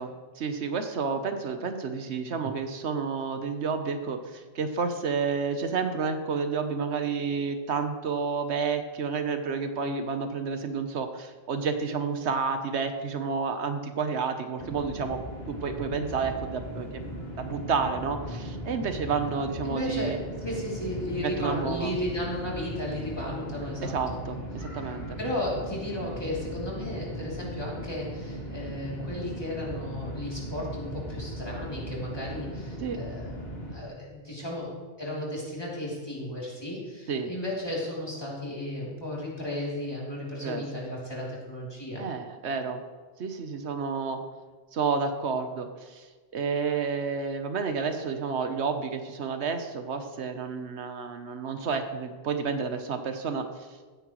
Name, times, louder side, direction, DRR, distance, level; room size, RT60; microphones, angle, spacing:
voice 1, 0.0-15.2 15.5-17.0 17.4-20.2 21.2-21.9 23.8-25.2 32.8-33.0 37.1-37.3 40.4-40.6 42.0-42.8 43.2-44.2 44.7-46.1 46.3-53.5, right 5 dB, 80° right, 7 dB, 1.2 m, -30 dB
sound 1, 14.6-33.7, equal, 65° left, 3.9 m, -38 dB
voice 2, 19.6-24.2 25.2-33.4 33.7-34.7 35.0-42.0, left 1 dB, 20° left, -5 dB, 3.1 m, -34 dB
15.0 x 9.9 x 3.1 m, 1.4 s
omnidirectional pair, 1.1 m